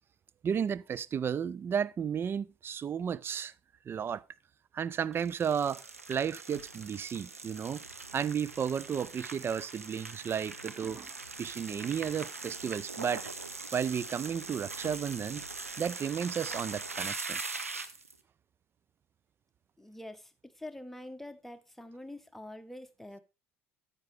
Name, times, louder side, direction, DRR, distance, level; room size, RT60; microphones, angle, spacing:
voice 1, 0.4-3.5 3.9-4.2 4.7-7.8 8.1-11.1 11.4-13.3 13.7-15.4 15.8-17.4, right 7 dB, 30° right, 0.4 m, -33 dB
sound 1, 5.1-18.1, right 3 dB, 90° right, 0.6 m, -42 dB
voice 2, 19.8-23.2, left 1 dB, 5° left, 1.1 m, -46 dB
9.5 x 8.4 x 3.3 m
figure-of-eight pair, 60°, 7 cm